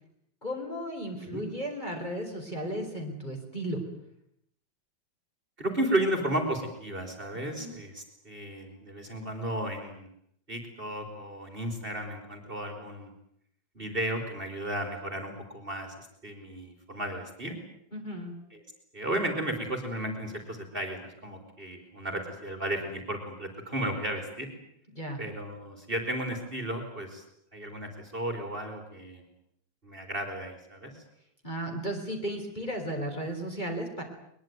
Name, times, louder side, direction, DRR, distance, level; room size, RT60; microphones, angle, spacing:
voice 1, 0.4-3.8 7.6-7.7 17.9-18.3 24.9-25.2 31.4-34.0, equal, 20° left, 3 dB, 4.4 m, -34 dB
voice 2, 5.6-10.1 10.5-13.1 13.8-17.6 18.9-24.5 25.2-27.2 27.5-29.2 29.8-31.0, right 1 dB, 25° right, 5 dB, 4.1 m, -34 dB
22.0 x 22.0 x 9.3 m, 0.71 s
omnidirectional pair, 2.1 m